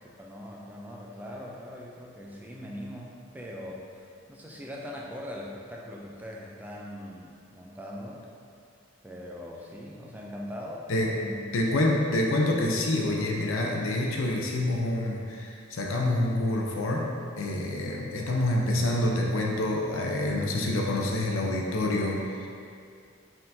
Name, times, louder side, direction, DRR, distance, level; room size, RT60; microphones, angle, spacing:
voice 1, 0.0-8.2 9.0-11.5, equal, 10° right, -3 dB, 0.3 m, -41 dB
voice 2, 11.5-17.1 17.4-22.5, left 1 dB, 80° left, -1 dB, 0.5 m, -27 dB
4.5 x 3.7 x 2.6 m, 2.3 s
head